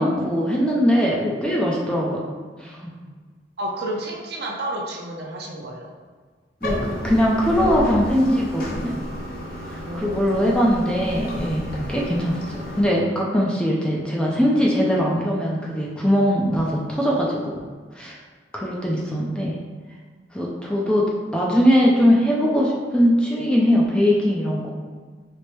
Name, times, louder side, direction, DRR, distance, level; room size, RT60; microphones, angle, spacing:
voice 1, 0.0-2.2 2.6-2.9 6.6-8.9 9.7-17.6 17.9-18.2 18.5-19.5 20.3-21.1 21.3-24.7, equal, 5° left, -4 dB, 0.4 m, -21 dB
voice 2, 3.6-5.9 9.8-10.7, right 1 dB, 60° right, -1 dB, 0.6 m, -31 dB
Bathtub (filling or washing), 6.6-12.8, equal, 50° left, 0.7 m, -32 dB
4.5 x 2.0 x 3.1 m, 1.5 s
head